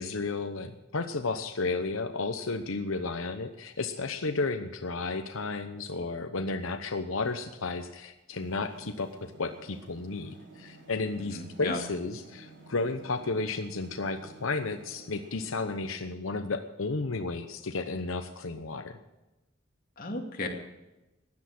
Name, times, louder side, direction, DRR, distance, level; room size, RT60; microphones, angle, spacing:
voice 1, 0.0-19.0, left 3 dB, 90° left, 7 dB, 0.9 m, -33 dB
sound 1, 8.3-16.0, right 2 dB, 60° right, 3.2 m, -52 dB
voice 2, 11.3-11.8 20.0-20.5, left 2 dB, 45° left, 1 dB, 2.5 m, -34 dB
15.5 x 10.5 x 6.1 m, 1.0 s
head